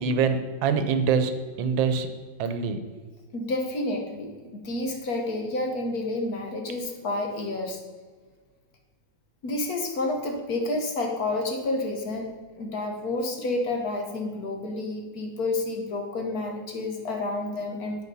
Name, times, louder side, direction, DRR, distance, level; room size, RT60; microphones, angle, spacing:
voice 1, 0.0-2.1 2.4-2.8, right 5 dB, 90° right, 9 dB, 1.5 m, -25 dB
voice 2, 3.3-7.8 9.4-12.3 12.5-18.0, left 2 dB, 55° left, 3 dB, 1.5 m, -30 dB
8.3 x 5.2 x 5.4 m, 1.5 s
omnidirectional pair, 2.0 m